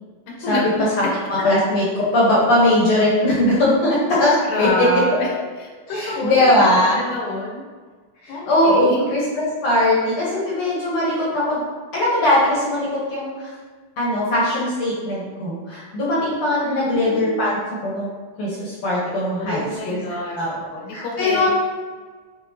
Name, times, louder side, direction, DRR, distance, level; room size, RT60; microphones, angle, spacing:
voice 1, 0.3-1.1 4.5-5.3 5.6-6.7 6.9-7.6 8.3-9.1 16.6-17.4 19.3-21.5, left 1 dB, 80° left, -2 dB, 3.1 m, -28 dB
voice 2, 1.0-4.9 5.9-7.0 8.2-11.6 11.9-13.5 14.0-18.1 18.4-20.0 20.3-20.5 20.9-21.5, left 1 dB, 60° left, -6 dB, 2.0 m, -20 dB
8.2 x 4.5 x 3.0 m, 1.4 s
omnidirectional pair, 4.6 m